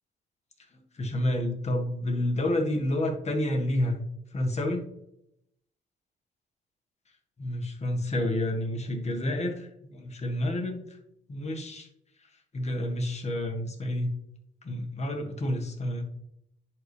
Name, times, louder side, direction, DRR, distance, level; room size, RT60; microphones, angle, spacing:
voice 1, 1.0-4.0 4.3-4.8 7.4-10.8 11.3-11.9 12.5-14.1 14.6-16.0, left 1 dB, 35° left, 3 dB, 1.5 m, -29 dB
10.5 x 4.2 x 3.3 m, 0.79 s
cardioid pair, 90°, 20 cm